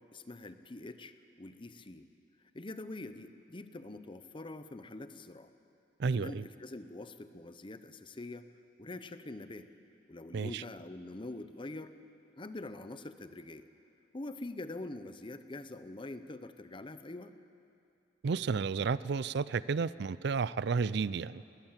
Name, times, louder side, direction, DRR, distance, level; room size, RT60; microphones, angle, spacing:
voice 1, 0.0-2.1 2.5-5.5 6.1-8.5 8.8-9.7 10.1-11.9 12.4-13.6 14.1-17.4, left 2 dB, 30° left, 11 dB, 0.8 m, -44 dB
voice 2, 6.0-6.4 10.3-10.6 18.2-21.4, right 5 dB, 65° right, 18 dB, 0.4 m, -32 dB
20.5 x 19.0 x 7.4 m, 2.6 s
head